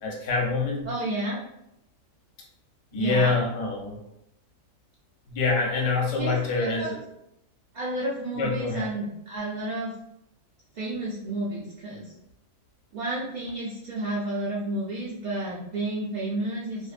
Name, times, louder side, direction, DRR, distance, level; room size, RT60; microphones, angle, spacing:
voice 1, 0.0-0.9 2.9-4.0 5.3-6.8 8.4-8.9, left 3 dB, 70° left, 0 dB, 0.9 m, -25 dB
voice 2, 0.8-1.4 2.9-3.4 6.2-6.9 7.7-9.9 10.7-12.1 12.9-16.9, right 1 dB, 75° right, -7 dB, 0.4 m, -31 dB
2.6 x 2.1 x 2.4 m, 0.83 s
omnidirectional pair, 1.4 m